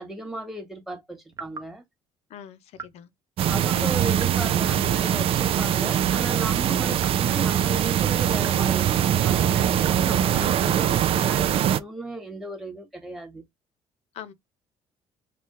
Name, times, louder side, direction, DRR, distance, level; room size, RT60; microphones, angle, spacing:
voice 1, 0.0-1.8 3.5-13.4, right 1 dB, ahead, 1.4 m, -35 dB
sound 1, 1.3-1.7 2.7-3.0 4.1-4.5 5.6-6.0 7.0-7.3 8.4-8.7 9.8-10.1, right 5 dB, 30° right, 0.8 m, -42 dB
voice 2, 2.3-3.1 10.1-10.4 14.1-14.3, left 9 dB, 70° left, 0.7 m, -42 dB
sound 2, 3.4-11.8, right 10 dB, 55° right, 0.5 m, -22 dB
3.2 x 2.3 x 4.3 m
cardioid pair, 105°, 11 cm